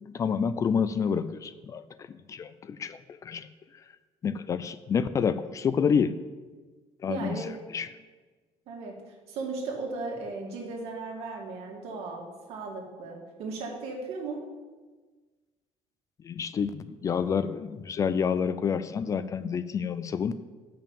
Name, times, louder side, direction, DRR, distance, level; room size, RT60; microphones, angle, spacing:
voice 1, 0.0-1.8 2.1-3.5 4.2-6.1 7.0-7.4 7.7-7.9 16.2-20.4, left 6 dB, 30° left, 14 dB, 0.3 m, -28 dB
voice 2, 7.1-7.6 8.7-9.0 9.3-14.4, right 3 dB, 70° right, 0 dB, 2.1 m, -36 dB
7.1 x 5.8 x 7.1 m, 1.3 s
cardioid pair, 145°, 10 cm